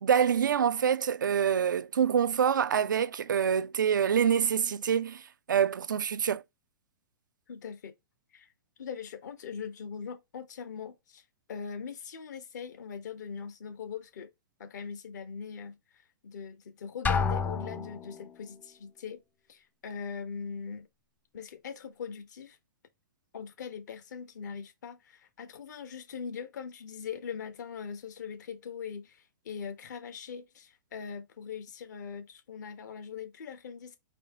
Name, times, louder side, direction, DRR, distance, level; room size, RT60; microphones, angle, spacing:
voice 1, 0.0-5.2 5.5-6.4, right 8 dB, 80° right, 0.4 m, -26 dB
voice 2, 7.5-7.9 8.3-8.5 8.8-11.2 11.5-14.3 14.6-15.8 16.2-19.2 19.5-20.9 21.3-22.6 23.3-34.0, left 6 dB, 65° left, 1.1 m, -41 dB
Drum, 17.1-18.3, left 5 dB, 15° left, 0.4 m, -29 dB
4.3 x 2.8 x 3.7 m
hypercardioid pair, 115°, 10 cm